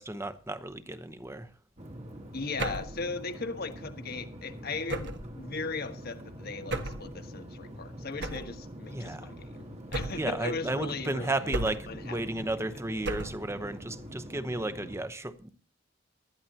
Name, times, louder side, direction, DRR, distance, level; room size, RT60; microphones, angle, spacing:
voice 1, 0.0-1.5 8.9-9.3 10.1-15.5, right 2 dB, 15° right, 0.9 m, -34 dB
sound 1, 1.8-15.0, equal, 35° right, 1.5 m, -45 dB
voice 2, 2.3-11.4 11.9-12.2, left 3 dB, 55° left, 1.3 m, -37 dB
sound 2, 2.6-3.0 4.9-5.3 6.7-7.1 8.2-8.6 9.9-10.4 11.5-12.0 13.0-13.5, right 2 dB, 65° right, 1.3 m, -34 dB
19.5 x 13.0 x 2.9 m
head